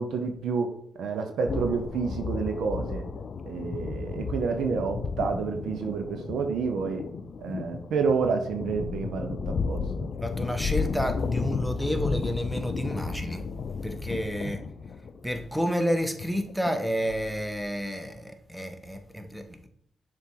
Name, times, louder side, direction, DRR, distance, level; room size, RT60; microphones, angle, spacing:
voice 1, 0.0-3.0 3.5-7.0 7.4-10.1 14.4-14.5, right 5 dB, 75° right, 0.8 m, -29 dB
sound 1, 1.5-17.6, left 4 dB, 60° left, 0.5 m, -33 dB
voice 2, 10.2-13.4 13.8-14.6 15.2-19.7, equal, ahead, 1.2 m, -30 dB
6.7 x 3.6 x 4.7 m
supercardioid pair, 45°, 0 cm